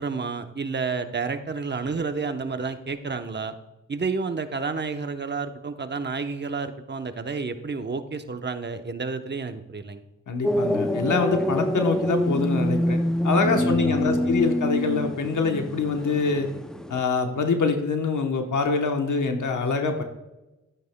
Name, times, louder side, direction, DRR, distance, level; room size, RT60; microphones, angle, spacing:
voice 1, 0.0-3.5 3.9-10.0 13.5-14.4, right 4 dB, 35° right, 8 dB, 0.8 m, -30 dB
voice 2, 10.3-13.0 13.2-16.5 16.9-20.0, left 4 dB, 75° left, 5 dB, 1.0 m, -25 dB
sound 1, 10.4-17.0, equal, ahead, 0.4 m, -26 dB
12.5 x 9.0 x 2.2 m, 1.0 s
cardioid pair, 50°, 31 cm